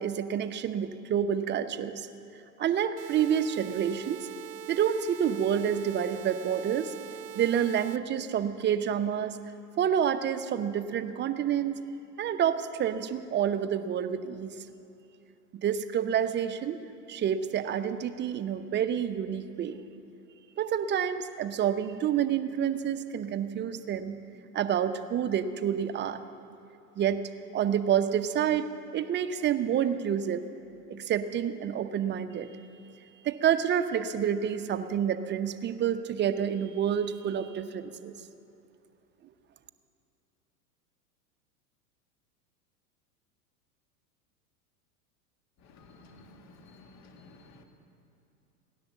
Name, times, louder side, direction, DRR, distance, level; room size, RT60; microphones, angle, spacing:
voice 1, 0.0-2.1 2.6-4.3 4.7-6.9 7.3-9.4 9.8-11.8 12.2-14.5 15.6-16.8 17.1-19.8 20.6-24.2 24.5-26.2 27.0-27.2 27.5-30.4 30.9-32.5 33.2-38.1, right 9 dB, 25° right, 9 dB, 0.8 m, -28 dB
sound 1, 3.0-8.0, right 12 dB, 75° right, 0.6 m, -43 dB
voice 2, 45.6-47.6, left 2 dB, 35° left, 4 dB, 1.9 m, -54 dB
16.5 x 10.5 x 7.3 m, 2.8 s
hypercardioid pair, 100°, 46 cm